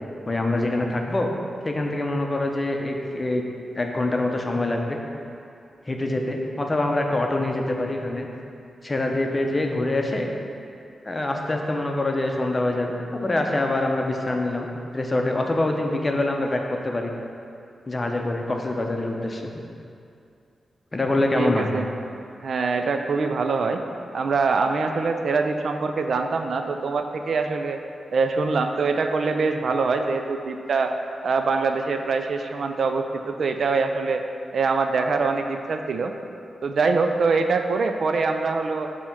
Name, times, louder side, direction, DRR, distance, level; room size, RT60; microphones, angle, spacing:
voice 1, 0.3-1.3 1.6-3.4 3.8-5.0 5.9-8.3 8.8-10.3 11.0-14.7 14.9-17.1 17.9-19.5 20.9-21.7, left 2 dB, 25° left, 2 dB, 0.6 m, -25 dB
voice 2, 21.3-21.9 22.4-23.8 24.1-27.8 28.1-30.9 31.2-34.2 34.5-36.1 36.6-38.9, right 4 dB, 70° right, 6 dB, 0.4 m, -24 dB
6.7 x 2.9 x 5.8 m, 2.5 s
cardioid pair, 90°, 0 cm